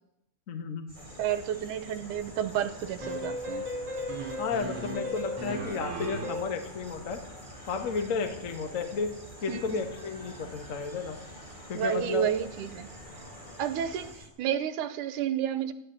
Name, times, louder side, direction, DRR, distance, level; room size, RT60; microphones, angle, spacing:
voice 1, 0.5-0.9 4.4-7.2 7.7-9.1 9.4-11.2 11.7-12.3, left 5 dB, 60° left, 6 dB, 0.8 m, -32 dB
sound 1, 0.9-14.1, left 1 dB, 20° left, 1.6 m, -48 dB
sound 2, 0.9-14.3, right 1 dB, 15° right, 3.5 m, -50 dB
voice 2, 1.2-3.7 9.5-9.8 11.7-12.9 13.6-15.7, right 9 dB, 80° right, 11 dB, 2.3 m, -31 dB
sound 3, 3.0-6.6, equal, 40° right, 3.6 m, -35 dB
13.5 x 10.5 x 7.5 m, 0.83 s
omnidirectional pair, 3.7 m